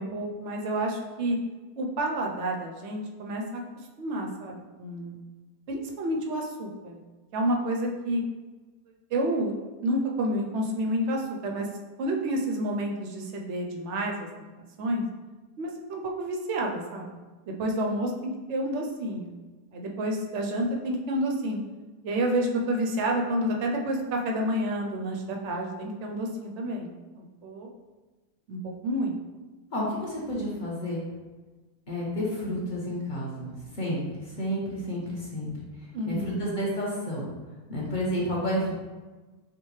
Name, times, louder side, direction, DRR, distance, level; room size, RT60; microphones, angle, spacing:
voice 1, 0.0-1.4 1.8-3.6 4.0-5.2 5.7-7.0 7.3-8.2 9.1-9.5 9.8-11.7 12.0-14.5 14.8-15.0 15.6-17.1 17.5-19.3 19.7-21.6 22.0-27.7 28.5-29.2 35.9-36.4, right 1 dB, 65° right, 1 dB, 0.7 m, -29 dB
voice 2, 29.7-31.0 31.9-33.5 33.8-34.0 34.4-35.5 36.1-37.3 37.7-38.7, equal, 35° left, -6 dB, 0.9 m, -30 dB
5.9 x 2.3 x 3.1 m, 1.3 s
omnidirectional pair, 1.7 m